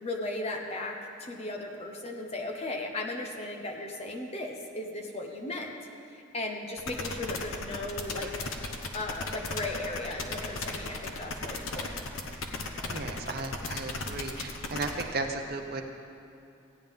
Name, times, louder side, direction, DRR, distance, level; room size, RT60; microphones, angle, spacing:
voice 1, 0.0-5.7 6.1-8.3 8.9-12.0, left 2 dB, 30° left, 1 dB, 0.8 m, -36 dB
sound 1, 6.8-15.0, left 3 dB, 85° left, 0.9 m, -36 dB
voice 2, 12.8-15.8, right 3 dB, 45° right, 5 dB, 0.7 m, -35 dB
15.5 x 9.3 x 3.6 m, 2.8 s
head